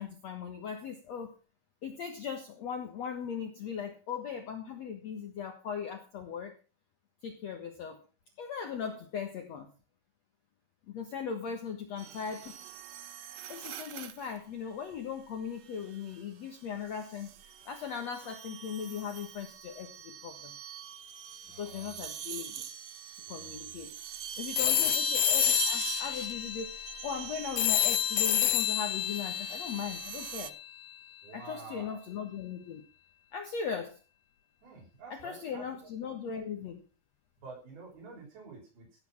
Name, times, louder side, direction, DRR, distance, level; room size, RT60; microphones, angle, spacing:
voice 1, 0.0-1.4 1.8-6.5 7.2-8.0 8.4-9.7 10.9-12.5 13.5-20.5 21.6-22.7 23.3-23.9 24.4-26.8 27.0-30.5 31.3-32.8 33.3-34.0 35.1-36.8, left 7 dB, 55° left, 5 dB, 2.2 m, -38 dB
sound 1, 12.0-14.4 15.7-16.1 16.9-30.5, right 9 dB, 65° right, 2.0 m, -41 dB
voice 2, 21.5-22.1 23.3-23.8 24.6-24.9 31.2-32.0 34.6-35.6 37.4-38.9, right 4 dB, 80° right, -1 dB, 7.6 m, -49 dB
sound 2, 24.6-30.7, left 13 dB, 90° left, 2.8 m, -30 dB
16.5 x 8.0 x 6.0 m, 0.34 s
omnidirectional pair, 4.3 m